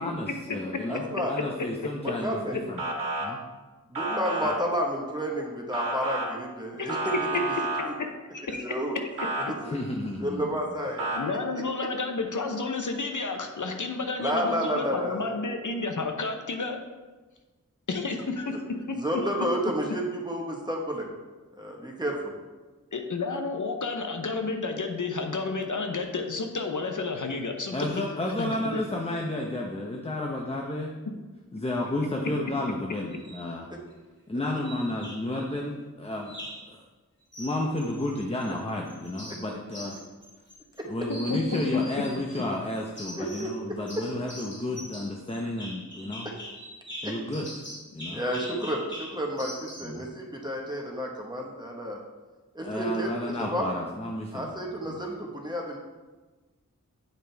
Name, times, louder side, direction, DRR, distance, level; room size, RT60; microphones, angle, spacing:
voice 1, 0.0-2.8 3.2-3.4 4.4-4.6 9.6-10.6 27.7-30.9 31.5-33.7 34.3-36.8 37.4-40.0 40.8-46.3 47.0-47.5 47.9-48.2 49.8-50.1 52.6-54.5 54.8-55.0, left 1 dB, 20° left, 0 dB, 0.7 m, -32 dB
voice 2, 0.9-1.3 2.0-2.6 3.9-7.4 8.7-9.0 9.6-9.7 10.2-11.4 14.2-15.4 18.9-21.1 21.6-22.3 40.8-40.9 43.2-44.0 46.2-46.3 47.0-47.1 48.1-52.0 52.5-53.7 54.3-55.8, equal, 15° right, -1 dB, 1.3 m, -31 dB
Motor vehicle (road) / Siren, 2.8-3.3 3.9-4.5 5.7-6.3 6.9-7.8 9.2-9.4 11.0-11.2, right 2 dB, 85° right, 1.5 m, -30 dB
voice 3, 8.0-8.6 11.1-16.8 17.9-19.0 22.9-28.0 28.4-28.8 41.1-41.4, left 3 dB, 65° left, 4 dB, 0.8 m, -31 dB
sound 1, 33.1-33.5 34.6-35.4 36.3-36.7 37.3-38.5 38.9-40.8 41.1-42.4 43.0-43.6 43.9-50.0, equal, 35° left, 2.5 m, -43 dB
9.1 x 5.0 x 3.4 m, 1.3 s
wide cardioid pair, 65°, 33 cm